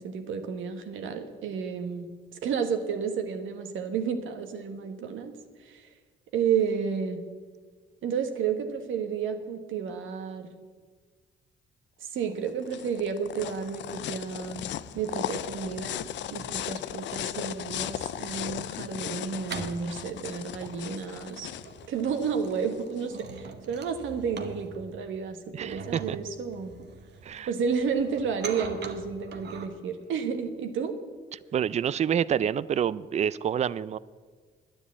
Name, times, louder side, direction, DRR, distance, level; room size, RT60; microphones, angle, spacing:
voice 1, 0.0-2.1 2.4-5.3 5.6-5.9 6.3-7.2 8.0-10.5 12.0-14.7 14.9-16.0 16.3-21.5 21.9-26.7 27.5-30.9, right 6 dB, 80° right, 7 dB, 1.4 m, -31 dB
sound 1, 12.2-23.1, left 12 dB, 65° left, 0.4 m, -37 dB
sound 2, 14.6-16.7 17.2-29.7, right 5 dB, 60° right, 1.2 m, -45 dB
voice 2, 25.5-26.2 27.2-27.5 31.5-34.0, right 8 dB, 35° right, 19 dB, 0.4 m, -27 dB
10.0 x 9.9 x 8.3 m, 1.5 s
cardioid pair, 90°, 20 cm